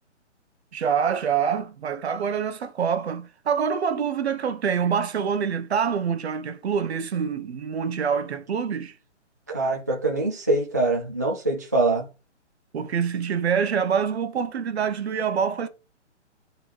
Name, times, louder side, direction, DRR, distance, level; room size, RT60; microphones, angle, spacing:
voice 1, 0.7-9.0 12.7-15.7, right 7 dB, 60° right, 0.9 m, -26 dB
voice 2, 9.5-12.1, right 2 dB, 15° right, 0.4 m, -24 dB
10.5 x 3.9 x 3.0 m
hypercardioid pair, 155°, 36 cm